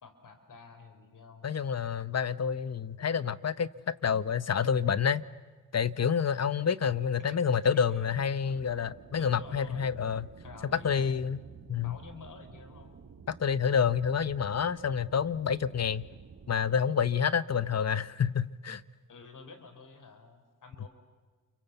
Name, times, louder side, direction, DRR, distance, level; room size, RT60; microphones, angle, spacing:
voice 1, 0.0-1.5 7.3-7.4 7.9-8.2 9.1-9.9 10.4-11.2 11.7-13.0 19.1-20.9, left 4 dB, 75° left, 4.0 m, -50 dB
voice 2, 1.4-5.2 5.7-10.3 10.8-11.4 11.7-12.0 13.3-16.1 16.5-18.8, left 7 dB, 55° left, 0.9 m, -28 dB
sound 1, 8.4-16.6, right 6 dB, 65° right, 2.0 m, -51 dB
29.0 x 24.0 x 8.1 m
cardioid pair, 55°, 32 cm